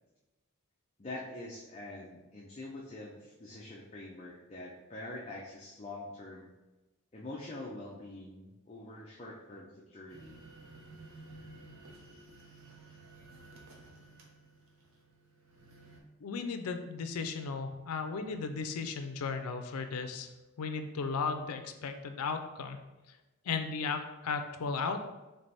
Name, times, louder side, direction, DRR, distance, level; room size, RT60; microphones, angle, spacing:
voice 1, 1.0-6.5 7.1-10.4 11.3-11.4, left 2 dB, 25° left, -4 dB, 0.5 m, -45 dB
sound 1, 10.1-16.0, right 2 dB, 60° right, 0.7 m, -54 dB
voice 2, 16.2-20.3 20.6-22.8 23.4-25.0, left 5 dB, 80° left, 7 dB, 0.4 m, -35 dB
3.3 x 3.3 x 4.1 m, 1.1 s
head